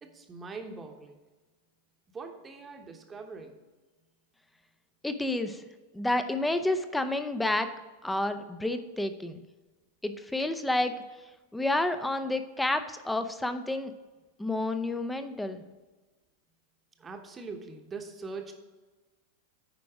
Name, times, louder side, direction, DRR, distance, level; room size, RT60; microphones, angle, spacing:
voice 1, 0.0-1.2 2.1-3.6 17.0-18.5, right 4 dB, 20° right, 5 dB, 1.0 m, -42 dB
voice 2, 5.0-5.6 5.9-7.7 8.0-9.4 10.0-10.9 11.5-13.9 14.4-15.6, left 2 dB, 5° left, 9 dB, 0.6 m, -29 dB
9.2 x 5.1 x 4.8 m, 1.2 s
figure-of-eight pair, 90°, 0 cm